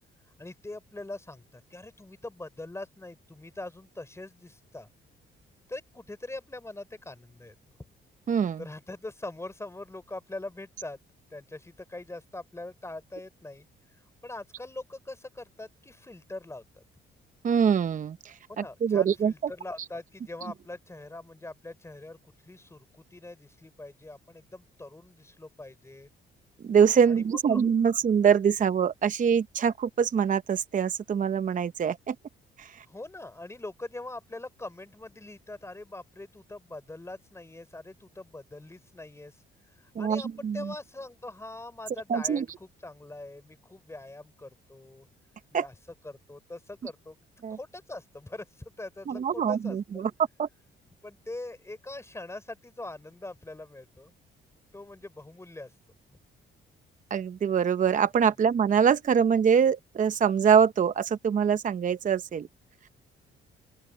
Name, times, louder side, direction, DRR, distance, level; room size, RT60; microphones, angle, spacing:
voice 1, 0.4-4.9 5.7-7.5 8.6-11.0 11.3-13.7 14.2-16.8 18.5-22.2 22.4-26.1 27.1-27.6 32.9-39.4 39.8-45.1 45.5-45.7 46.0-47.2 47.5-50.1 51.0-54.1 54.7-55.7 58.3-58.4, left 2 dB, 15° left, 5.6 m, -42 dB
voice 2, 8.3-8.6 17.4-18.2 18.8-19.3 26.7-32.1 32.6-32.7 40.0-40.6 42.1-42.4 45.5-45.7 47.4-47.6 49.1-50.1 50.4-50.5 57.1-62.5, right 7 dB, 40° right, 0.7 m, -24 dB
open air
cardioid pair, 90°, 20 cm